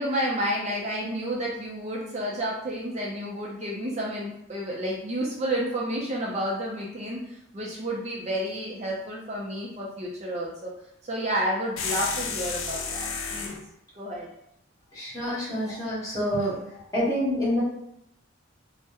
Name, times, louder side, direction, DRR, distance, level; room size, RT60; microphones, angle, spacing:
voice 1, 0.0-10.7 11.0-13.5 14.0-14.3, right 1 dB, 35° right, -4 dB, 0.5 m, -30 dB
sound 1, 11.8-13.6, left 5 dB, 80° left, 0.4 m, -31 dB
voice 2, 14.9-16.6 16.9-17.6, equal, 15° left, -9 dB, 1.2 m, -27 dB
2.8 x 2.1 x 3.4 m, 0.80 s
head